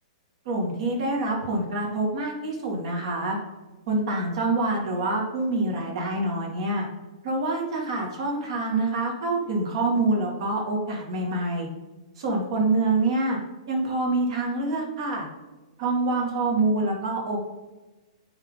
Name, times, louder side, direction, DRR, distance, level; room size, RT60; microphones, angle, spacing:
voice 1, 0.4-3.4 3.9-6.8 7.2-11.7 12.2-13.4 13.7-15.3 15.8-17.5, right 2 dB, 55° right, 0 dB, 2.3 m, -26 dB
9.5 x 3.8 x 3.9 m, 1.1 s
hypercardioid pair, 145°, 4 cm